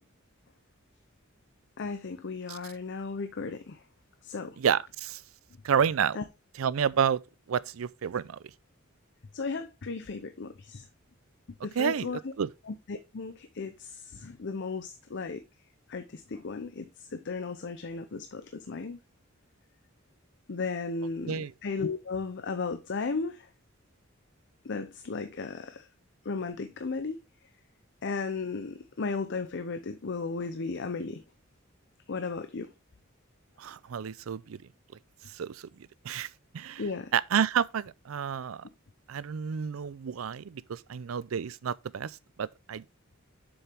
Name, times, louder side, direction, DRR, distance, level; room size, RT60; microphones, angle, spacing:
voice 1, 1.8-3.8 4.2-4.6 6.1-6.2 9.3-10.9 11.6-12.3 12.7-15.4 15.9-19.0 20.5-23.5 24.6-25.9 26.2-27.2 28.0-31.2 32.1-32.7 36.8-37.1, left 4 dB, 60° left, 0.7 m, -35 dB
voice 2, 4.6-5.2 5.6-6.2 6.6-7.2 7.5-8.4 11.8-12.1 12.4-12.5 21.3-21.5 33.6-34.6 35.3-35.6 36.0-36.3 36.5-36.8 37.1-38.7 39.1-42.8, right 7 dB, 90° right, 0.4 m, -29 dB
7.1 x 6.8 x 3.4 m
head